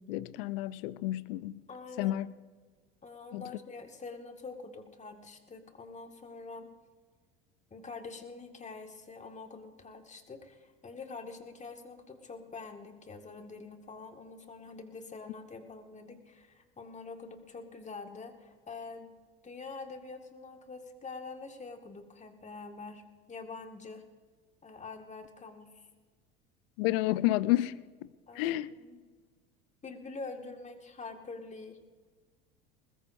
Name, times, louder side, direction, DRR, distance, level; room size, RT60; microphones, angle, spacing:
voice 1, 0.0-1.6 2.0-2.3 3.3-3.4 26.8-28.1 28.3-28.7, left 16 dB, 65° left, 0.7 m, -30 dB
voice 2, 1.7-2.2 3.0-6.7 7.7-19.1 19.4-23.0 23.3-24.0 24.6-25.9 28.3-29.0 29.8-31.8, left 4 dB, 25° left, 2.0 m, -45 dB
21.0 x 20.5 x 2.7 m
hypercardioid pair, 75°, 31 cm